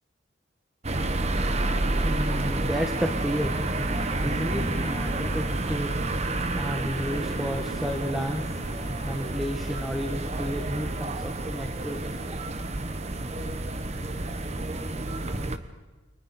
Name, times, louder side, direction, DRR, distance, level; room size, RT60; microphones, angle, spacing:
sound 1, 0.8-15.6, right 2 dB, 35° right, 1.1 m, -29 dB
voice 1, 2.0-5.9 6.5-8.4 9.0-12.3, equal, ahead, 3 dB, 1.3 m, -32 dB
sound 2, 3.7-9.4, left 2 dB, 75° left, 2.0 m, -46 dB
30.0 x 23.5 x 4.3 m, 1.3 s
head